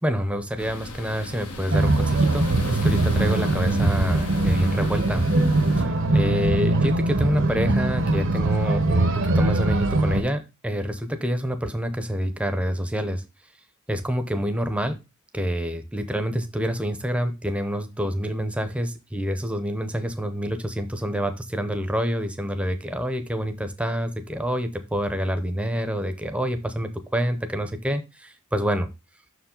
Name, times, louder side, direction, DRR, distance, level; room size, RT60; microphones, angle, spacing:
voice 1, 0.0-5.3 6.1-13.2 13.9-15.0 15.3-28.9, equal, 5° right, 8 dB, 0.6 m, -27 dB
sound 1, 0.6-5.8, left 2 dB, 85° left, 1.2 m, -35 dB
sound 2, 1.7-10.2, right 2 dB, 60° right, 0.8 m, -22 dB
6.2 x 4.8 x 3.7 m, 0.26 s
head